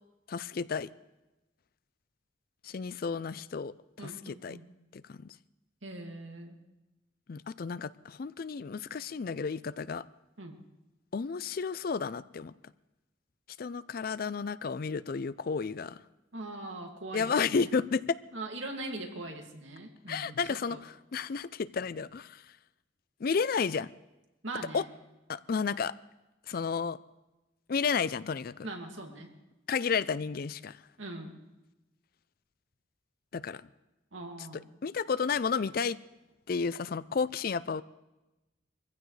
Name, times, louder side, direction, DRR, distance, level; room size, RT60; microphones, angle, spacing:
voice 1, 0.3-0.9 2.6-3.7 4.0-4.6 4.9-5.3 7.3-10.0 11.1-12.5 13.6-16.0 17.1-18.2 20.1-22.4 23.2-23.9 24.7-24.8 25.3-25.9 26.5-27.0 27.7-28.7 29.7-30.8 33.3-33.6 34.8-36.0 36.5-37.8, left 5 dB, 50° left, 0.4 m, -32 dB
voice 2, 4.0-4.6 5.8-6.6 10.4-10.6 16.3-17.7 18.3-20.3 20.7-20.8 24.4-24.9 28.6-29.3 31.0-31.4 34.1-34.7, right 2 dB, 80° right, 2.3 m, -41 dB
23.5 x 15.5 x 3.3 m
head